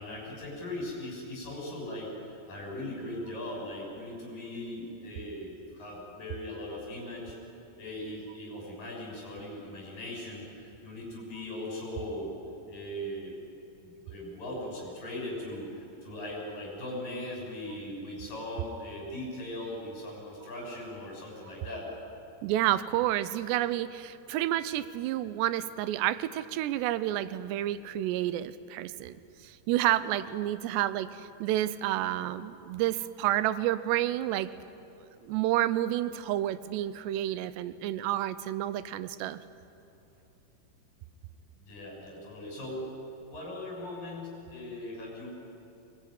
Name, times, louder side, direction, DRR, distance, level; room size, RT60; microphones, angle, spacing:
voice 1, 0.0-7.4 7.8-12.3 12.7-13.3 13.8-15.7 16.0-21.9 41.6-42.9 43.3-45.3, left 1 dB, 55° left, -2 dB, 8.2 m, -39 dB
voice 2, 22.4-29.2 29.4-34.5 35.2-39.4, right 13 dB, 90° right, 14 dB, 2.9 m, -30 dB
23.5 x 20.5 x 9.9 m, 2.9 s
omnidirectional pair, 4.8 m